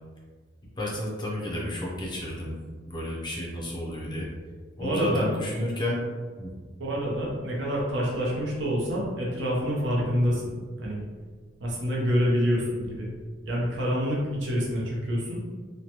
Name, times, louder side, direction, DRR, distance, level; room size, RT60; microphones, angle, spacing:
voice 1, 0.8-2.6 2.8-4.3 4.8-6.1 6.4-6.5, left 1 dB, 25° left, -4 dB, 0.5 m, -31 dB
voice 2, 4.8-5.3 6.8-11.0 11.6-13.1 13.4-15.4, equal, 65° right, -4 dB, 0.8 m, -27 dB
3.0 x 2.1 x 2.9 m, 1.5 s
head